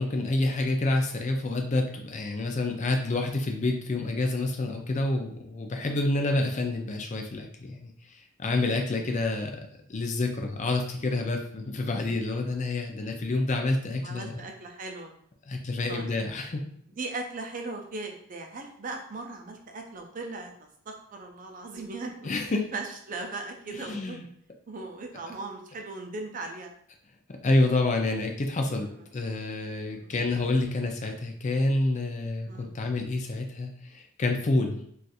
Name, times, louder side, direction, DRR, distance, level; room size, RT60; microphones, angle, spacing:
voice 1, 0.0-7.9 8.4-9.5 9.9-14.4 15.5-16.6 22.2-22.6 23.7-24.2 27.4-28.9 29.1-34.8, left 2 dB, 35° left, 3 dB, 0.4 m, -28 dB
voice 2, 14.0-15.1 15.9-16.1 17.0-20.5 20.9-22.3 22.7-24.2 24.7-26.7 29.9-30.1 32.5-32.8, right 3 dB, 40° right, 3 dB, 0.5 m, -38 dB
2.5 x 2.4 x 4.0 m, 0.66 s
head